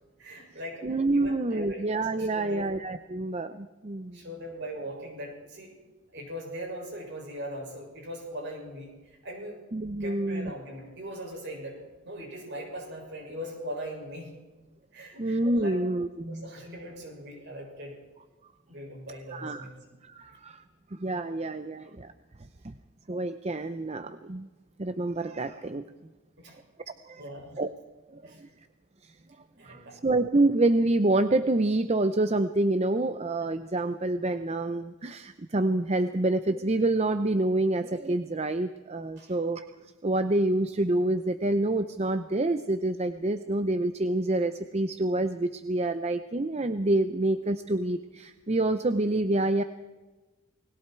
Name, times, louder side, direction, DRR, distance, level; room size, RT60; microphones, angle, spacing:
voice 1, 0.2-1.8 2.2-2.8 4.1-5.7 6.1-9.6 10.0-14.4 14.9-15.8 16.3-18.0 18.7-19.8 26.4-26.6 27.2-27.6 28.2-28.4 29.6-30.0 39.2-39.3, equal, 50° right, 1 dB, 6.8 m, -40 dB
voice 2, 0.8-4.2 9.7-10.5 15.2-16.5 19.3-19.6 20.0-20.6 20.9-22.1 22.6-22.7 23.1-24.5 24.8-25.8 27.1-27.2 27.6-27.7 28.1-28.5 29.0-29.1 29.6-39.6 40.0-49.6, right 2 dB, 30° right, 10 dB, 0.6 m, -27 dB
29.5 x 20.5 x 4.6 m, 1.2 s
head